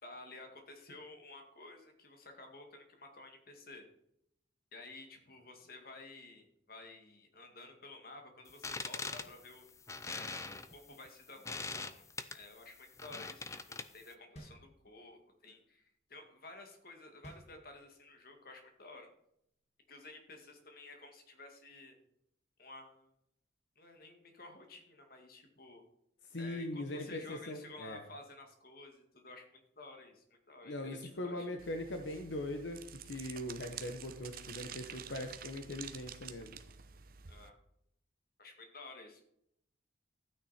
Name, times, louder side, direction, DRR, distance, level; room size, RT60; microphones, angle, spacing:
voice 1, 0.0-3.8 4.7-9.6 10.0-12.0 12.3-19.1 19.9-22.0 22.6-23.1 23.8-25.8 26.4-31.5 37.3-37.6 38.4-39.2, left 2 dB, 50° left, 4 dB, 2.1 m, -53 dB
sound 1, 8.5-14.1, left 4 dB, 15° left, 0.5 m, -43 dB
sound 2, 14.4-15.3 17.2-18.2, right 1 dB, 35° left, 1.6 m, -54 dB
voice 2, 26.3-28.0 30.6-36.6, left 1 dB, 75° left, 5 dB, 1.0 m, -41 dB
sound 3, 31.6-37.5, right 8 dB, 50° right, 0.7 m, -49 dB
13.0 x 9.1 x 4.3 m, 0.76 s
head